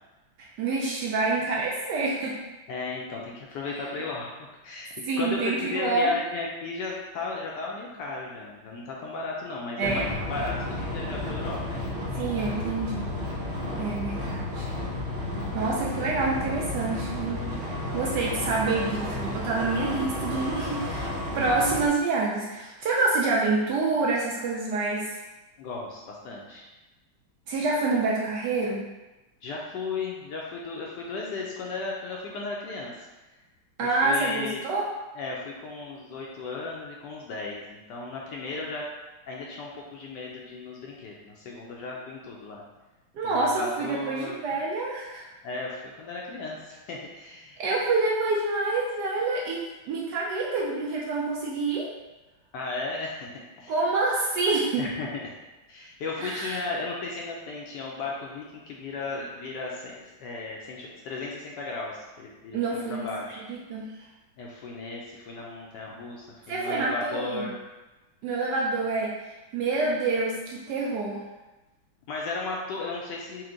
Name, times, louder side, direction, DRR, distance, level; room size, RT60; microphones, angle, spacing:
voice 1, 0.4-2.3 5.1-6.1 9.8-10.1 12.2-13.1 13.7-14.7 15.5-25.2 27.5-28.8 33.8-34.8 43.1-45.3 47.6-51.9 53.7-54.9 56.2-56.6 62.5-63.1 63.4-63.9 66.5-67.5 68.2-71.2, right 3 dB, 70° right, -4 dB, 1.0 m, -27 dB
voice 2, 2.7-4.3 4.6-12.0 25.6-26.7 29.4-32.9 33.8-34.7 35.1-38.8 39.3-42.6 43.2-44.4 45.4-47.6 52.5-53.3 53.6-53.7 54.8-55.2 55.7-59.9 60.2-62.6 62.9-63.4 64.4-67.6 72.1-73.4, left 3 dB, 75° left, -2 dB, 1.1 m, -35 dB
sound 1, 9.8-21.9, left 1 dB, 90° right, 0.5 m, -32 dB
4.4 x 2.1 x 3.7 m, 1.1 s
omnidirectional pair, 2.2 m